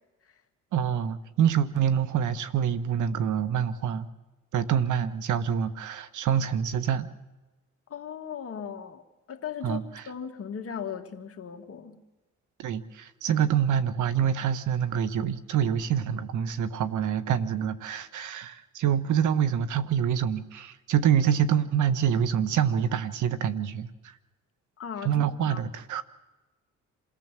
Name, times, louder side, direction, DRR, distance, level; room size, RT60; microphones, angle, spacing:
voice 1, 0.7-4.1 4.5-7.1 9.6-10.0 12.6-24.1 25.0-26.0, right 8 dB, 75° right, 1.4 m, -26 dB
voice 2, 7.9-9.0 9.3-9.8 10.1-12.0 24.8-25.6, left 7 dB, 50° left, 2.2 m, -37 dB
27.5 x 18.0 x 7.6 m
cardioid pair, 90°, 30 cm